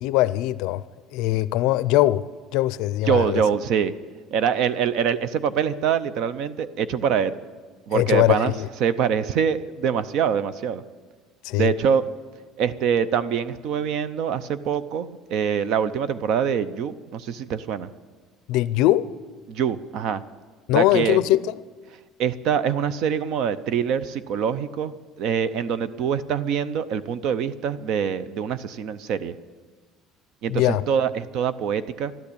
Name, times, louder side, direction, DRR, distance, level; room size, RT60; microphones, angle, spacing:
voice 1, 0.0-0.8 1.1-2.2 2.5-3.4 7.9-8.7 11.4-11.7 18.5-19.1 20.7-21.5 30.5-30.8, left 15 dB, 65° left, 0.5 m, -21 dB
voice 2, 3.1-3.9 4.3-7.4 7.9-8.5 8.8-10.8 11.6-12.0 12.6-17.9 19.5-20.2 20.7-21.2 22.2-29.3 30.4-32.1, right 7 dB, 50° right, 0.6 m, -24 dB
13.5 x 12.0 x 8.6 m
cardioid pair, 180°, 0 cm